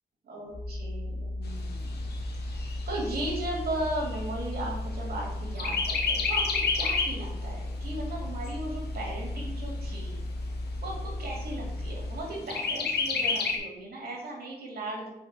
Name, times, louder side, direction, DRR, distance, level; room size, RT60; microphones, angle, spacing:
voice 1, 0.2-2.0 2.5-10.2 10.8-15.1, right 1 dB, 70° right, -3 dB, 2.4 m, -37 dB
sound 1, 0.5-12.2, left 1 dB, 20° left, 0.8 m, -35 dB
Chirp tweet, 1.4-5.2 5.6-7.2 7.7-7.8 8.1-9.1 9.7-9.8 10.2-10.3 10.7-11.2 12.5-13.6, left 4 dB, 90° left, 0.9 m, -30 dB
5.3 x 5.1 x 3.7 m, 0.88 s
cardioid pair, 70°, 16 cm